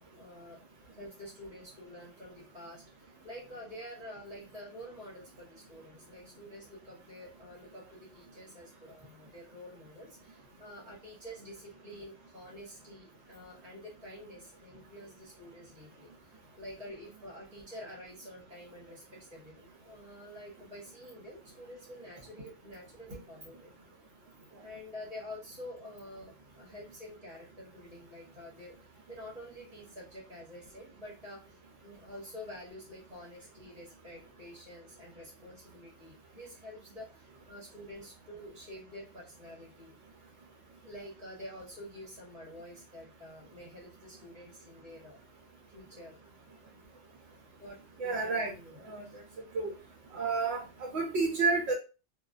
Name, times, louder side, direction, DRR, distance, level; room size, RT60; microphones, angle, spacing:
voice 1, 0.2-0.6 0.9-2.8 3.2-16.1 16.6-23.7 24.6-39.9 40.8-45.2 45.7-46.3 47.6-48.8 49.0-49.2, left 1 dB, 30° right, -5 dB, 1.2 m, -48 dB
voice 2, 48.0-48.5 48.9-49.0 49.5-49.7 50.1-51.7, right 4 dB, 65° right, 0 dB, 0.9 m, -30 dB
2.4 x 2.4 x 2.2 m, 0.31 s
omnidirectional pair, 1.3 m